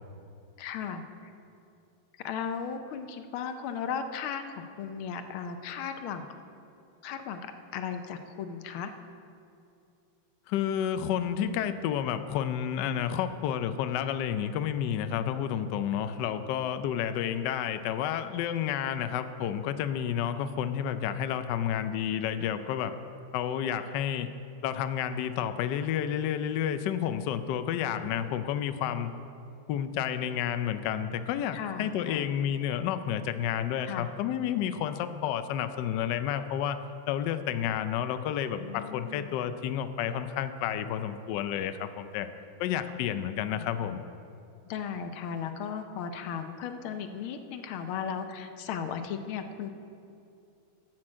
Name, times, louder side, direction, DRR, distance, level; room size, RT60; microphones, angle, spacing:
voice 1, 0.6-1.3 2.2-6.3 7.0-8.9 31.5-32.3 33.9-34.1 34.6-34.8 38.6-39.4 42.9-43.0 44.6-49.7, left 7 dB, 90° left, 8 dB, 1.6 m, -36 dB
voice 2, 10.5-22.9 23.3-24.3 24.6-29.1 29.7-36.8 37.1-42.3 42.6-44.0, left 9 dB, 70° left, 10 dB, 1.1 m, -30 dB
12.0 x 6.1 x 7.4 m, 2.6 s
omnidirectional pair, 2.2 m